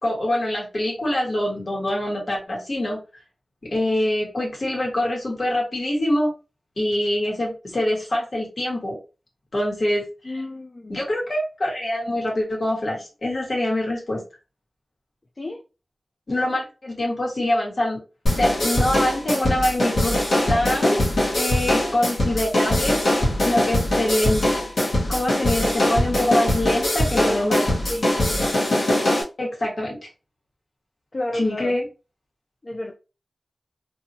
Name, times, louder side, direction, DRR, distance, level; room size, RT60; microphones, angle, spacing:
voice 1, 0.0-3.0 3.7-6.3 6.8-9.0 9.5-10.3 10.9-14.2 16.3-18.0 18.3-20.2 20.5-21.0 21.4-23.0 23.4-24.4 25.1-27.7 29.4-30.0 31.3-31.9, left 1 dB, 60° left, 1.5 m, -24 dB
voice 2, 10.2-11.0 15.4-15.6 27.1-27.6 27.9-28.1 31.1-31.8 32.6-32.9, left 1 dB, 40° left, 0.4 m, -31 dB
sound 1, 18.3-29.2, left 1 dB, 75° left, 1.2 m, -22 dB
2.8 x 2.7 x 2.7 m
wide cardioid pair, 80°, 0 cm